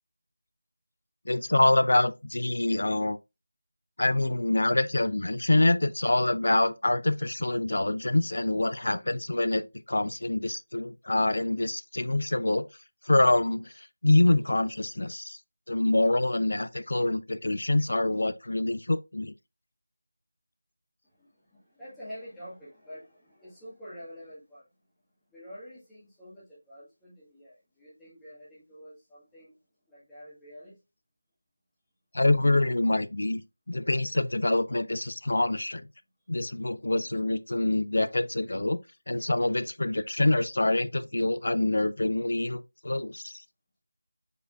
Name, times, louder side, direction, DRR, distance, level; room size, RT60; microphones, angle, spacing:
voice 1, 1.3-3.2 4.0-12.7 13.1-15.4 15.7-19.3 32.1-33.4 33.7-35.9 36.3-38.8 39.1-43.4, left 2 dB, 65° left, 0.4 m, -26 dB
voice 2, 21.0-24.7 25.3-29.5 29.9-30.7, equal, 5° left, 1.4 m, -47 dB
4.9 x 4.1 x 2.3 m
figure-of-eight pair, 170°, 0 cm